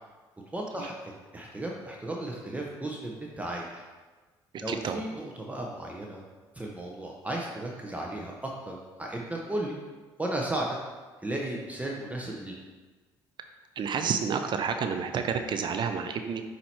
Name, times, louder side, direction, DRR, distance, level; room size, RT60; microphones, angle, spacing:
voice 1, 0.5-3.8 4.6-6.2 6.5-9.8 10.2-10.8 11.2-12.6, right 1 dB, 15° right, -2 dB, 0.9 m, -35 dB
voice 2, 4.7-5.0 13.8-16.4, right 6 dB, 55° right, 7 dB, 0.5 m, -30 dB
7.6 x 2.9 x 4.3 m, 1.3 s
supercardioid pair, 75°, 10 cm